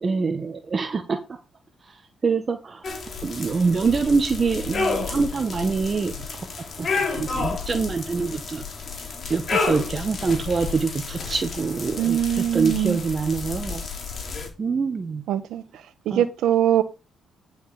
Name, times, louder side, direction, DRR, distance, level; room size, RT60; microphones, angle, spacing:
voice 1, 0.0-1.2 2.2-2.8 3.2-6.2 6.8-8.6 9.3-12.2 12.5-13.8 14.6-15.2 16.1-16.2, right 4 dB, 35° right, 1.5 m, -25 dB
sound 1, 2.8-14.5, left 4 dB, 45° left, 3.8 m, -31 dB
voice 2, 12.0-13.0 15.3-15.6 16.0-16.8, right 11 dB, 80° right, 1.6 m, -22 dB
10.5 x 6.5 x 5.1 m
cardioid pair, 90°, 0 cm